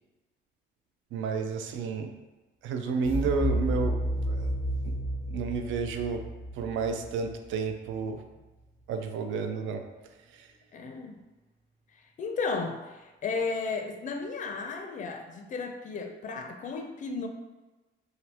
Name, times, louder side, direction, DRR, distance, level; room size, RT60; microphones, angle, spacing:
voice 1, 1.1-2.1 2.6-4.5 4.8-5.0 5.3-6.2 6.6-8.2 8.9-9.8 10.3-10.5, right 5 dB, 80° right, 5 dB, 0.4 m, -31 dB
sound 1, 3.0-7.9, equal, 30° right, 0.7 m, -31 dB
voice 2, 10.7-11.2 12.2-17.3, left 4 dB, 40° left, 4 dB, 0.4 m, -34 dB
2.8 x 2.4 x 3.3 m, 1.2 s
cardioid pair, 90°, 20 cm